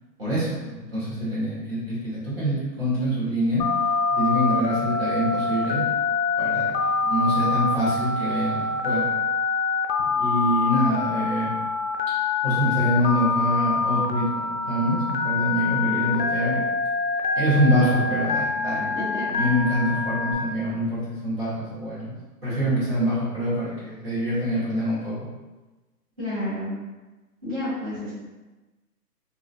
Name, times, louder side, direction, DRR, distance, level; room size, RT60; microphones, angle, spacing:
voice 1, 0.2-3.6 4.1-5.8 6.4-9.1 10.0-11.5 12.4-16.6 17.3-18.9 19.3-22.1 22.4-25.2, equal, 35° right, -11 dB, 1.3 m, -25 dB
Telephone, 3.6-20.3, left 4 dB, 85° left, 0.6 m, -25 dB
voice 2, 18.8-19.6 26.2-26.7 27.4-28.1, left 1 dB, 20° right, -15 dB, 0.9 m, -32 dB
2.9 x 2.5 x 2.6 m, 1.2 s
hypercardioid pair, 175°, 49 cm